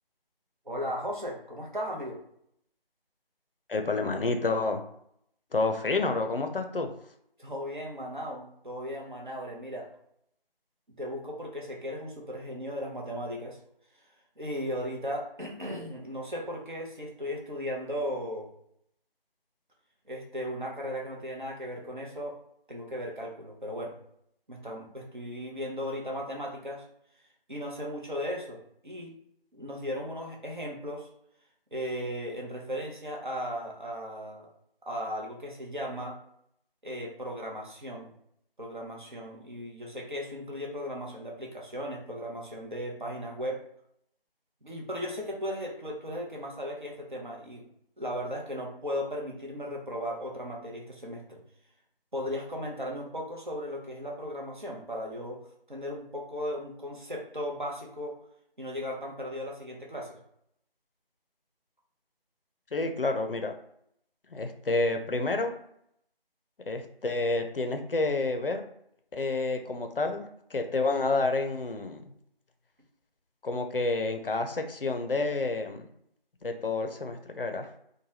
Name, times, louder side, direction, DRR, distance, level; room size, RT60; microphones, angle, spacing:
voice 1, 0.7-2.2 7.4-9.9 11.0-13.6 14.4-18.5 20.1-22.3 22.7-24.0 24.5-26.8 27.5-29.1 29.5-31.1 31.7-34.5 34.9-36.2 36.8-38.1 38.6-43.6 44.6-47.6 48.0-51.4 52.1-55.4 55.7-58.1 58.6-60.2, equal, 55° right, -1 dB, 0.8 m, -36 dB
voice 2, 3.7-4.8 5.5-6.9 62.7-63.5 64.3-65.5 66.7-68.6 69.1-70.2 70.5-72.0 73.4-75.9 76.4-77.7, left 3 dB, 65° left, 6 dB, 0.5 m, -29 dB
3.1 x 2.1 x 2.8 m, 0.72 s
figure-of-eight pair, 170°, 30 cm